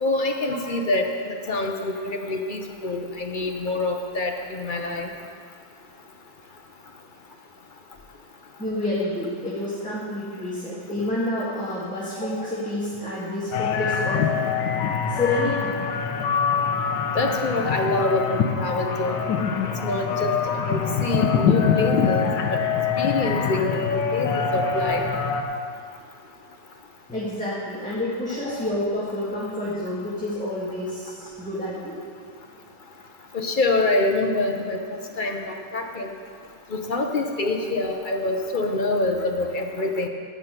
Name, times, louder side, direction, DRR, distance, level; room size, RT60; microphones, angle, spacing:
voice 1, 0.0-5.1 17.1-19.2 19.8-20.3 20.7-22.6 23.0-25.1 33.3-34.8 35.2-36.1 36.7-40.1, left 2 dB, 50° left, 3 dB, 0.6 m, -26 dB
voice 2, 8.6-14.3 15.1-15.8 27.1-32.0, left 1 dB, 5° left, -9 dB, 1.9 m, -28 dB
sound 1, 13.5-25.4, left 6 dB, 70° left, 1.5 m, -24 dB
13.5 x 5.8 x 8.1 m, 2.2 s
omnidirectional pair, 2.0 m